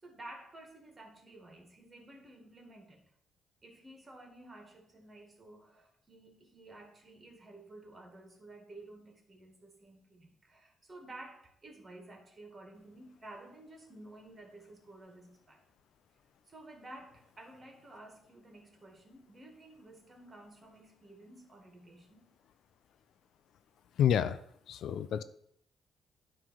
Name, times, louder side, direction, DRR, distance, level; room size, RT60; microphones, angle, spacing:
voice 1, 0.0-3.1 3.6-15.6 16.5-22.3, right 2 dB, 30° right, 2.0 m, -52 dB
voice 2, 24.0-25.2, left 9 dB, 70° left, 0.4 m, -29 dB
9.0 x 3.3 x 6.3 m
cardioid pair, 90°, 0 cm